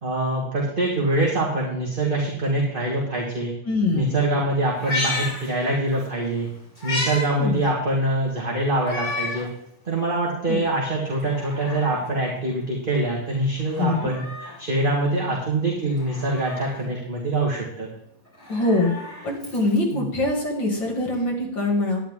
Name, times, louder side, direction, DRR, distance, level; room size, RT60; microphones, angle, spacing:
voice 1, 0.0-3.5 3.9-6.5 6.8-9.5 9.9-17.9 19.9-20.1, right 1 dB, 25° right, -2 dB, 1.9 m, -24 dB
voice 2, 3.6-4.1 7.4-7.6 10.5-10.6 13.8-14.1 18.5-18.9 19.2-22.0, left 2 dB, 70° left, -1 dB, 3.1 m, -23 dB
Meow, 4.7-6.1 6.4-7.3 7.6-7.7 8.8-9.5 10.0-10.1 11.1-12.1 13.6-14.6 16.0-16.8 18.3-19.9 21.1-21.2, left 2 dB, 20° left, 5.1 m, -32 dB
11.0 x 10.0 x 3.7 m, 0.78 s
omnidirectional pair, 2.1 m